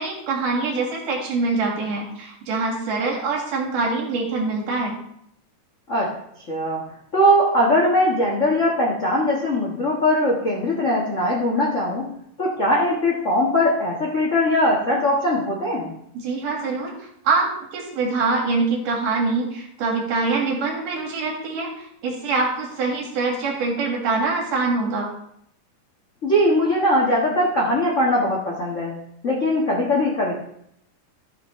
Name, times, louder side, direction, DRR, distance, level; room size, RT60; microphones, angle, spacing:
voice 1, 0.0-4.9 16.1-25.1, right 3 dB, 75° right, -1 dB, 3.4 m, -24 dB
voice 2, 6.5-6.8 7.1-12.1 12.4-15.9 26.2-28.9 29.2-30.3, left 1 dB, 60° left, -3 dB, 0.7 m, -20 dB
13.5 x 6.4 x 3.1 m, 0.73 s
omnidirectional pair, 3.8 m